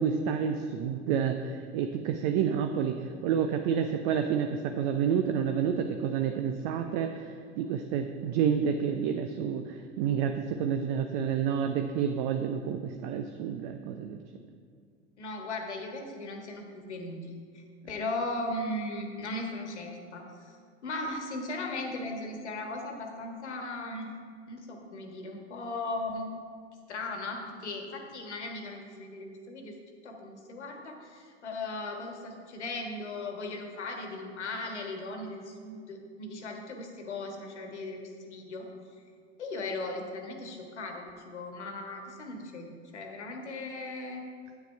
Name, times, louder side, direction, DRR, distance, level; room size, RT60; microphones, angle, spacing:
voice 1, 0.0-14.2, right 7 dB, 40° right, 6 dB, 0.6 m, -29 dB
voice 2, 15.2-20.6 20.8-24.1 24.5-26.3 26.9-29.8 30.0-38.7 39.4-44.3, left 2 dB, 70° left, 3 dB, 1.5 m, -37 dB
9.1 x 8.5 x 4.5 m, 2.1 s
figure-of-eight pair, 85°, 35 cm